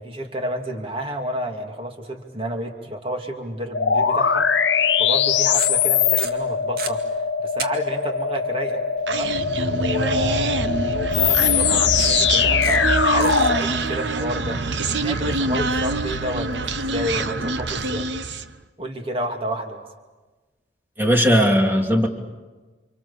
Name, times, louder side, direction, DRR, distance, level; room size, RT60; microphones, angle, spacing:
voice 1, 0.0-9.4 9.8-18.1 18.8-19.9, equal, 30° right, 3 dB, 2.7 m, -30 dB
sound 1, 3.7-13.6, left 7 dB, 80° left, 1.1 m, -21 dB
sound 2, 4.2-4.3 5.4-5.9 6.2-6.9 7.6-7.7 8.0-8.1 11.1-11.2 12.0-12.3 12.6-12.9 13.2-13.5, right 5 dB, 55° right, 2.2 m, -31 dB
Human voice, 9.1-18.5, right 3 dB, 80° right, 1.1 m, -25 dB
voice 2, 21.0-22.1, equal, 10° right, 2 dB, 2.8 m, -17 dB
30.0 x 26.5 x 7.3 m, 1.2 s
head